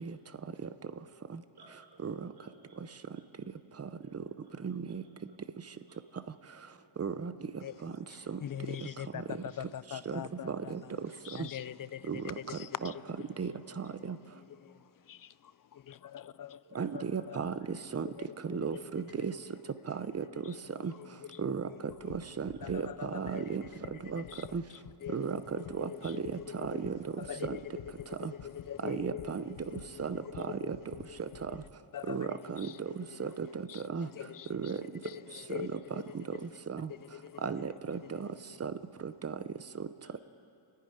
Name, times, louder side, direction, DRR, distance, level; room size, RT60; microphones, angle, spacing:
voice 1, 1.5-2.1 2.3-2.9 3.1-3.3 3.8-4.2 4.4-4.5 4.9-5.3 5.6-6.0 6.4-6.5 6.8-6.9 8.4-8.6 16.6-17.6 35.3-35.4 35.8-35.9 40.0-40.1, right 3 dB, 55° right, 6.2 m, -60 dB
voice 2, 4.6-5.0 7.0-7.3 10.1-10.2 10.5-10.8 12.1-12.2 12.8-12.9 13.4-13.5 16.8-17.5 17.9-18.1 18.5-19.3 20.1-20.2 20.8-20.9 21.4-21.6 22.4-22.8 23.1-23.6 24.1-24.2 24.5-24.6 25.1-25.4 25.7-26.2 26.6-26.9 27.4-27.6 28.8-29.4 30.0-30.2 30.7-30.8 32.1-32.7 33.2-33.5 33.9-34.1 34.5-34.8 35.5-35.6 36.7-36.8 37.4-38.0 38.6-38.7 39.2-39.3, right 6 dB, 30° right, 0.7 m, -34 dB
voice 3, 8.1-10.9 11.2-13.0 14.3-16.6 16.9-17.4 18.2-18.3 18.5-19.0 20.4-21.4 21.7-22.1 22.6-23.7 24.0-24.5 25.0-26.8 27.2-27.6 28.0-29.3 29.7-30.7 31.3-31.4 31.9-33.3 33.7-34.7 35.0-35.8 36.1-36.2 36.9-37.4, left 10 dB, 45° left, 0.5 m, -44 dB
sound 1, 21.9-31.8, left 9 dB, 90° left, 1.1 m, -51 dB
29.5 x 10.5 x 10.0 m
wide cardioid pair, 145°, 47 cm